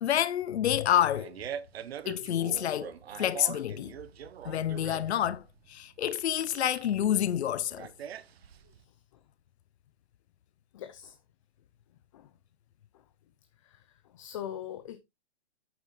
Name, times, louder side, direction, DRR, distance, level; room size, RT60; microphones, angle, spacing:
voice 1, 0.0-1.3 2.1-2.9 3.2-3.9 4.4-5.4 5.7-7.9, left 11 dB, 75° left, 0.7 m, -28 dB
Fart, 0.8-8.8, right 9 dB, 65° right, 0.9 m, -43 dB
voice 2, 10.7-11.2 12.1-12.3 13.6-13.8 14.1-15.0, left 10 dB, 30° left, 0.7 m, -41 dB
9.0 x 8.0 x 3.2 m
hypercardioid pair, 160°, 33 cm